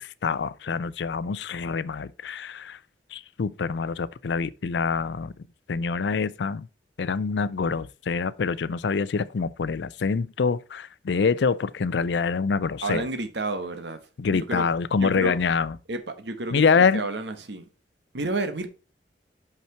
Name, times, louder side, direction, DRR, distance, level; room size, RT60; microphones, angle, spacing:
voice 1, 0.0-2.8 3.1-5.3 5.7-6.7 7.0-13.0 14.2-15.8 16.5-17.0, left 5 dB, 75° left, 0.4 m, -25 dB
voice 2, 12.8-14.0 14.3-14.6 15.0-15.4 15.9-16.6 16.9-17.7 18.1-18.7, right 2 dB, 75° right, 1.2 m, -30 dB
5.9 x 5.7 x 4.4 m
head